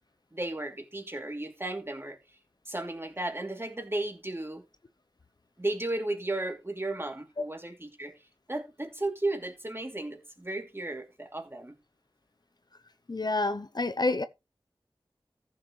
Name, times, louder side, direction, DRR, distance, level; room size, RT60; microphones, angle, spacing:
voice 1, 0.3-2.2 2.6-4.6 5.6-8.1 8.5-11.7, right 2 dB, 25° right, 2.8 m, -34 dB
voice 2, 13.1-14.2, left 2 dB, 50° left, 0.7 m, -28 dB
14.5 x 6.7 x 3.1 m
wide cardioid pair, 40°, 9 cm